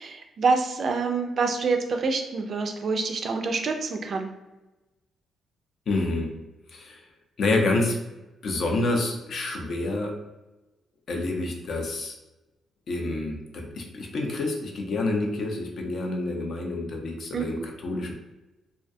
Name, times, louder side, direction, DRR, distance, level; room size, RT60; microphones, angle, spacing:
voice 1, 0.0-4.3 17.3-17.5, right 4 dB, 50° right, 4 dB, 0.3 m, -26 dB
voice 2, 5.9-6.3 6.7-7.0 7.4-8.0 8.4-10.1 11.1-12.1 12.9-18.1, left 2 dB, 60° left, 2 dB, 0.5 m, -28 dB
2.3 x 2.1 x 2.6 m, 1.0 s
cardioid pair, 110°, 0 cm